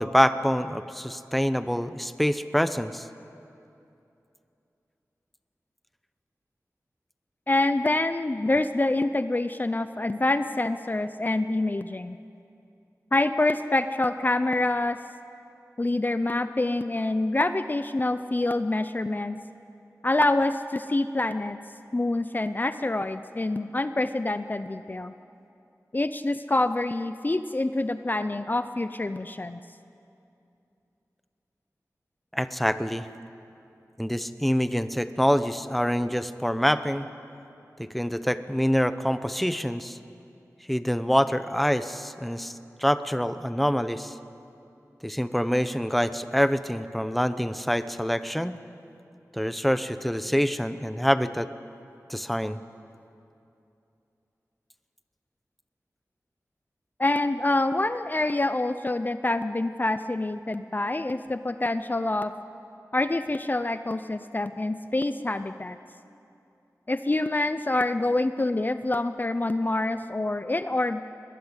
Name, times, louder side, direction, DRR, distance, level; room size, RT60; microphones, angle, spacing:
voice 1, 0.0-3.1 32.3-33.1 34.0-37.1 37.8-40.0 40.7-44.1 45.0-48.6 49.3-51.5 52.1-52.6, equal, ahead, 12 dB, 0.8 m, -26 dB
voice 2, 7.5-12.2 13.1-15.0 15.8-19.4 20.0-21.6 21.9-25.1 25.9-29.6 57.0-62.3 62.9-65.8 66.9-71.0, left 2 dB, 30° left, 11 dB, 0.6 m, -26 dB
22.0 x 20.5 x 8.2 m, 2.7 s
wide cardioid pair, 75°, 6 cm